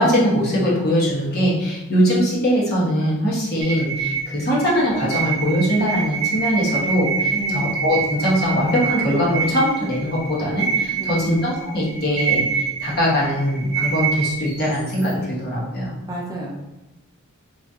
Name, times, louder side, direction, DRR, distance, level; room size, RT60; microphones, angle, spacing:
voice 1, 0.0-15.9, equal, 45° left, -6 dB, 1.2 m, -21 dB
sound 1, 3.6-15.1, right 6 dB, 50° right, 0.8 m, -26 dB
voice 2, 7.3-7.7 11.0-11.3 16.1-16.6, right 1 dB, 15° right, -3 dB, 0.5 m, -31 dB
3.6 x 3.1 x 2.7 m, 0.97 s
head